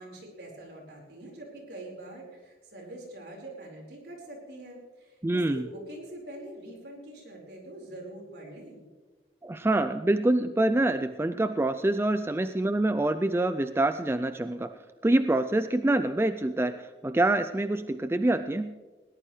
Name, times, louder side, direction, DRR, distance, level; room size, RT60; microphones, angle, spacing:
voice 1, 0.0-8.8, right 1 dB, 65° right, -1 dB, 4.7 m, -44 dB
voice 2, 5.2-5.6 9.4-16.8 17.0-18.8, right 2 dB, 15° right, 11 dB, 0.4 m, -26 dB
20.5 x 18.5 x 3.2 m, 1.3 s
head